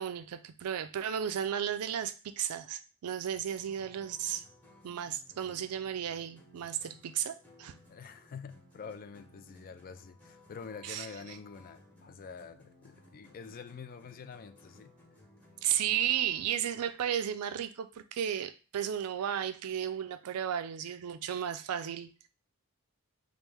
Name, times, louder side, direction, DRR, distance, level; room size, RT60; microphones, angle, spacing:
voice 1, 0.0-4.4 4.8-7.7 10.8-11.4 15.6-22.3, right 9 dB, 75° right, 0.4 m, -34 dB
sound 1, 3.3-16.4, left 1 dB, 5° left, 0.8 m, -59 dB
voice 2, 7.9-14.9, left 5 dB, 40° left, 0.3 m, -47 dB
3.1 x 2.5 x 3.4 m
head